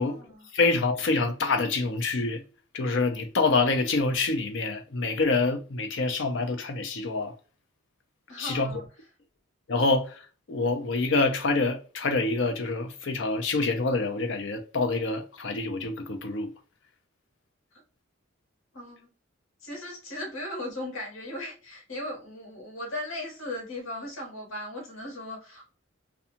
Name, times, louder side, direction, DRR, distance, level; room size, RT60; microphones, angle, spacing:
voice 1, 0.0-0.5 8.3-8.8 17.7-17.8 18.7-19.1 19.6-25.7, left 1 dB, 80° left, 1.1 m, -37 dB
voice 2, 0.5-2.4 2.7-7.3 8.4-8.7 9.7-10.2 10.5-16.5, left 3 dB, 65° left, 0.6 m, -26 dB
2.5 x 2.3 x 2.7 m
head